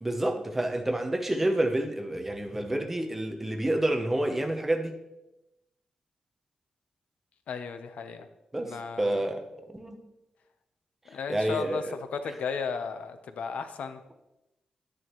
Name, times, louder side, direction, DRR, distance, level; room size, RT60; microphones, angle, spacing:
voice 1, 0.0-5.0 8.5-10.0 11.3-11.9, right 1 dB, 10° right, 5 dB, 0.8 m, -29 dB
voice 2, 7.5-8.3 8.6-9.2 11.1-14.0, left 6 dB, 85° left, 9 dB, 0.8 m, -35 dB
10.5 x 9.8 x 3.1 m, 0.93 s
wide cardioid pair, 175°, 2 cm